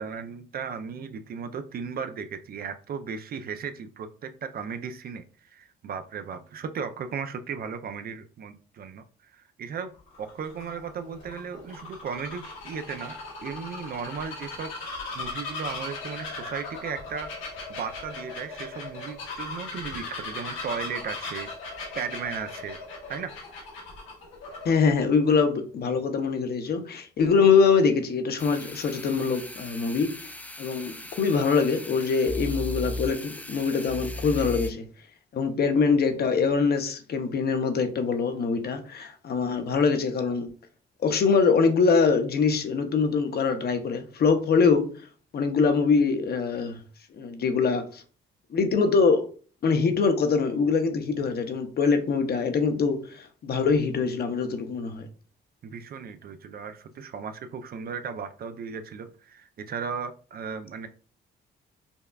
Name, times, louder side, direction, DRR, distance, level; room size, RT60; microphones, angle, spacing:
voice 1, 0.0-9.9 10.2-17.3 17.7-21.5 21.9-22.8 23.1-23.3 55.6-60.9, right 6 dB, 50° right, 0.4 m, -36 dB
Bird vocalization bird call bird song, 10.0-25.0, left 3 dB, 85° left, 1.2 m, -38 dB
voice 2, 24.6-30.3 30.6-34.8 35.3-40.5 41.0-44.9 45.3-46.8 47.2-48.0 48.5-49.3 49.6-55.1, left 5 dB, 55° left, 0.7 m, -23 dB
sound 1, 28.4-34.7, left 2 dB, 10° left, 0.4 m, -37 dB
5.3 x 2.3 x 2.3 m
cardioid pair, 90°, 20 cm